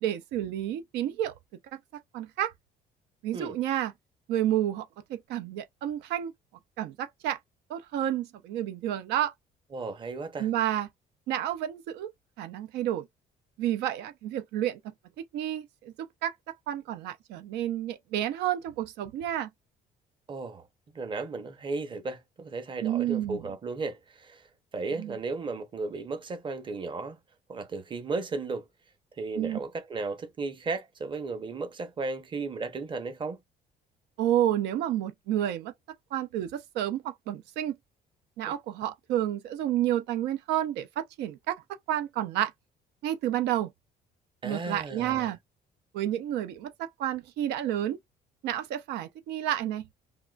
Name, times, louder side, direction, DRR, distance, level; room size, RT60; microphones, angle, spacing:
voice 1, 0.0-1.3 1.7-1.8 2.1-2.5 3.2-3.9 4.3-6.3 6.8-7.4 7.7-9.3 10.4-10.9 11.3-12.1 12.4-13.1 13.6-14.9 15.3-15.9 16.2-19.5 22.8-23.4 25.0-25.1 29.4-29.6 34.2-35.7 36.1-37.7 38.4-41.6 41.9-42.5 43.0-43.7 44.4-45.4 45.9-48.0 48.4-49.9, right 12 dB, 85° right, 0.5 m, -30 dB
voice 2, 9.7-10.5 20.3-20.7 20.9-24.5 24.7-27.2 27.5-28.7 29.2-33.4 38.5-38.6 44.4-45.3, right 3 dB, 30° right, 0.8 m, -35 dB
3.6 x 2.2 x 2.3 m
cardioid pair, 110°, 17 cm